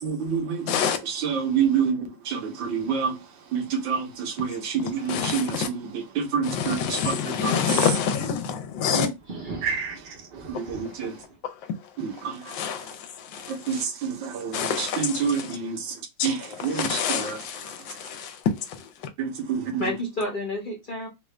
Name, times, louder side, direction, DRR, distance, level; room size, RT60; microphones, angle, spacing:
voice 1, 0.0-7.8 9.6-11.2 12.0-12.9 13.4-17.7 19.2-19.9, right 6 dB, 70° right, 1.5 m, -28 dB
voice 2, 0.7-1.0 5.1-5.7 6.4-9.1 11.4-11.5 12.5-13.8 14.5-15.5 16.2-16.3 16.7-18.9, left 7 dB, 70° left, 1.4 m, -27 dB
sound 1, 8.3-11.4, right 3 dB, 45° right, 0.7 m, -41 dB
voice 3, 8.9-9.7 11.0-11.1 19.8-21.1, left 1 dB, 45° left, 0.7 m, -31 dB
3.7 x 2.5 x 3.2 m
omnidirectional pair, 2.2 m